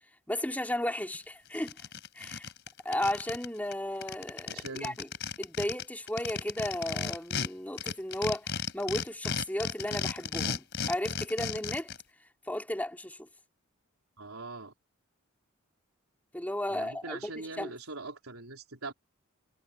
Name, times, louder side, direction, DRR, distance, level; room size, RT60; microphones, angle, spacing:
voice 1, 0.3-1.8 2.1-2.5 2.8-5.1 5.4-11.9 12.5-13.3 16.3-17.2 17.6-17.7, left 1 dB, 5° left, 3.2 m, -34 dB
sound 1, 1.1-1.2 1.5-3.5 3.7-3.8 4.0-7.5 7.8-12.0, left 6 dB, 55° left, 4.5 m, -34 dB
voice 2, 4.4-5.0 14.2-14.7 16.7-18.9, right 3 dB, 90° right, 3.9 m, -42 dB
head